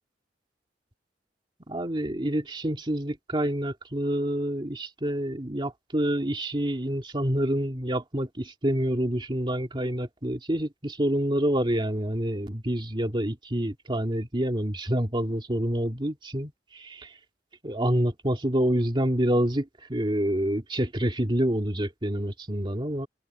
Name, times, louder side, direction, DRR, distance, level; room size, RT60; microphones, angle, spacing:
voice 1, 1.7-17.1 17.6-23.1, right 1 dB, 30° right, 2.4 m, -27 dB
head